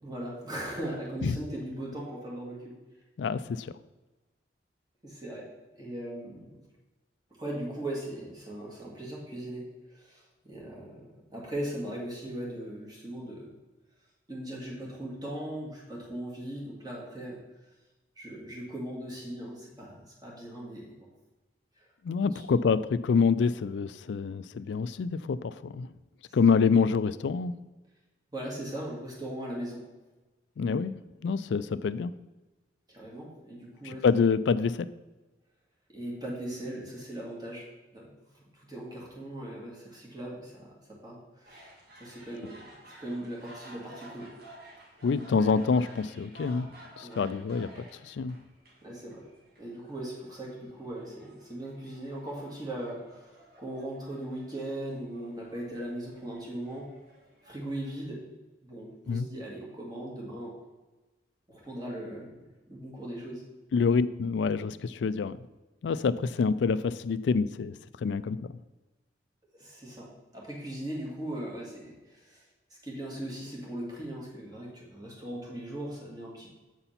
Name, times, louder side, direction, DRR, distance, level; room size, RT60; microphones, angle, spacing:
voice 1, 0.0-2.7 5.0-5.4 5.7-6.5 7.4-13.5 14.3-17.4 18.2-21.1 21.8-21.9 22.3-22.4 26.4-26.5 28.3-29.8 32.9-34.0 35.9-37.7 37.9-38.1 38.5-40.7 41.0-41.7 42.0-42.7 43.0-44.3 47.0-47.2 48.8-49.2 49.6-56.9 57.4-58.2 58.6-60.5 61.5-62.4 62.7-63.4 69.6-72.4 72.8-76.5, right 1 dB, 20° right, -4 dB, 1.9 m, -39 dB
voice 2, 3.2-3.7 22.0-25.9 26.3-27.5 30.6-30.9 31.2-32.1 33.8-34.9 45.0-46.7 47.0-48.4 59.1-59.3 63.7-65.4 65.8-67.7 68.0-68.4, left 5 dB, 70° left, 15 dB, 0.3 m, -26 dB
sound 1, 41.4-58.1, right 1 dB, 55° right, 1.6 m, -54 dB
7.9 x 4.2 x 5.7 m, 1.1 s
head